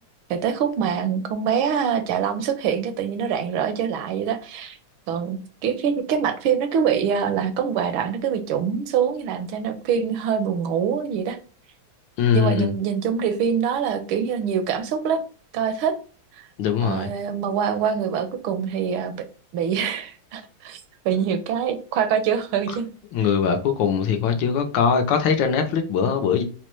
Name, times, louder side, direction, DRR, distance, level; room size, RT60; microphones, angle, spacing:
voice 1, 0.3-4.8 5.1-11.4 12.3-15.2 15.5-16.0 16.8-19.2 19.5-20.8 21.0-22.9, right 7 dB, 80° right, 1.4 m, -24 dB
voice 2, 12.2-12.7 16.6-17.1 22.7-22.8 23.1-26.4, left 7 dB, 75° left, 1.2 m, -21 dB
4.1 x 2.1 x 3.0 m
omnidirectional pair, 2.2 m